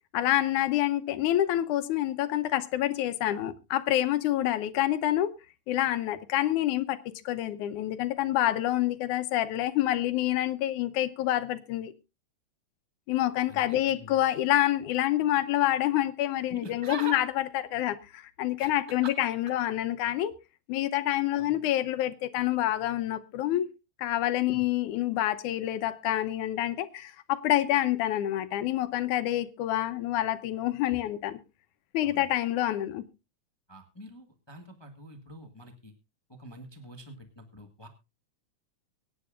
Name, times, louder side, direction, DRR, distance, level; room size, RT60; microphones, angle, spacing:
voice 1, 0.1-5.3 5.7-11.9 13.1-20.3 20.7-23.7 24.0-31.4 31.9-33.0, left 13 dB, 85° left, 2.3 m, -27 dB
voice 2, 13.5-14.2 16.5-17.2 18.6-19.1 21.4-21.5 24.5-24.6 32.0-32.3 33.7-35.9 36.3-37.9, right 2 dB, 30° left, 0.4 m, -44 dB
24.0 x 9.5 x 2.5 m
omnidirectional pair, 3.4 m